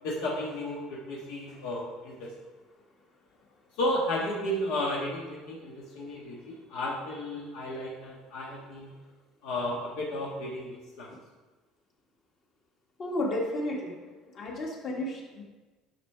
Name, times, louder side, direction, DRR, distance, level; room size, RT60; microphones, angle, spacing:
voice 1, 0.0-2.3 3.8-8.9 9.4-11.1, left 1 dB, 75° left, -3 dB, 1.4 m, -33 dB
voice 2, 13.0-14.0 14.3-15.4, left 1 dB, 40° left, -1 dB, 1.6 m, -32 dB
11.0 x 5.8 x 3.4 m, 1.2 s
cardioid pair, 160°, 0 cm